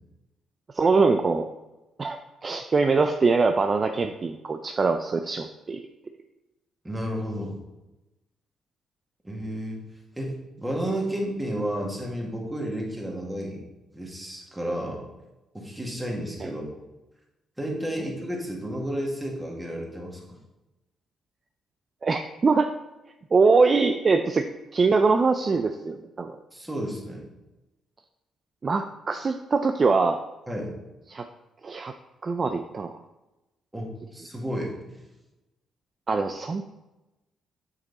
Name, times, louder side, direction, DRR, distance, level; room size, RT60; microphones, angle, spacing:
voice 1, 0.7-1.5 2.0-5.8 16.4-16.5 22.0-22.7 23.3-24.5 24.7-26.4 28.6-30.2 31.1-31.2 31.6-31.9 32.2-33.0 36.1-36.6, right 4 dB, 35° right, 6 dB, 0.4 m, -23 dB
voice 2, 6.8-7.6 9.2-9.8 10.2-13.6 13.9-15.0 15.5-16.7 17.6-20.2 26.5-27.2 30.5-30.7 33.7-34.7, equal, 10° right, -1 dB, 2.0 m, -31 dB
7.5 x 5.3 x 4.1 m, 1.0 s
cardioid pair, 100°, 0 cm